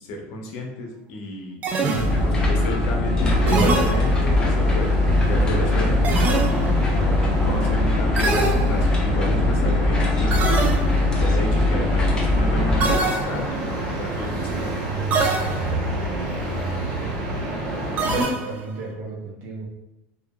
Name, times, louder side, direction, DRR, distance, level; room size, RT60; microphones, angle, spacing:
voice 1, 0.0-1.6 2.2-6.2 6.9-10.5 11.2-14.7, left 1 dB, 65° left, 1 dB, 0.6 m, -32 dB
sound 1, 1.6-2.5 3.5-4.5 6.0-6.9 8.2-9.2 10.3-11.2 12.8-13.7 15.1-15.9 18.0-18.8, right 3 dB, 35° right, 0.4 m, -25 dB
sound 2, 1.9-13.0, left 2 dB, 15° left, 0.5 m, -21 dB
sound 3, 3.2-18.2, right 1 dB, 90° right, 0.8 m, -29 dB
voice 2, 16.5-17.6 18.1-19.7, right 3 dB, 60° right, -1 dB, 0.8 m, -37 dB
2.8 x 2.3 x 2.2 m, 0.91 s
supercardioid pair, 130°, 5 cm